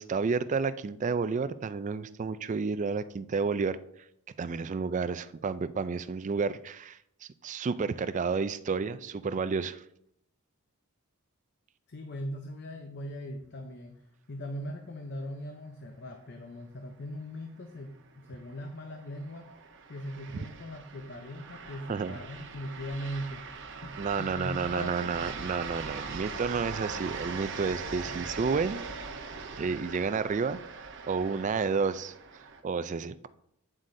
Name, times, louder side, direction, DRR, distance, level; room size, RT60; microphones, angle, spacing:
voice 1, 0.0-3.8 4.4-9.8 20.3-20.5 21.9-22.2 24.0-28.8 29.6-30.6 31.1-33.3, right 5 dB, 35° right, 14 dB, 0.3 m, -31 dB
voice 2, 11.9-14.0 14.3-25.1, equal, 50° left, 4 dB, 0.7 m, -40 dB
sound 1, 17.7-32.6, right 4 dB, 55° right, 0.8 m, -41 dB
8.9 x 7.5 x 2.6 m, 0.73 s
head